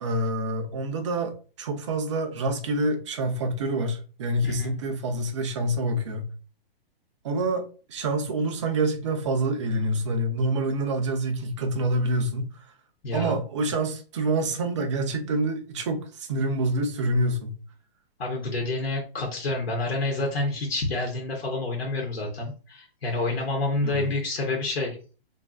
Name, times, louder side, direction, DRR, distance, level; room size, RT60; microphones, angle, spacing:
voice 1, 0.0-6.3 7.2-12.6 13.1-17.6 23.8-24.1, right 1 dB, 30° right, 0.4 m, -27 dB
voice 2, 4.4-4.8 13.0-13.4 18.2-25.0, left 2 dB, 85° left, 1.1 m, -28 dB
2.5 x 2.4 x 2.3 m
hypercardioid pair, 155°, 30 cm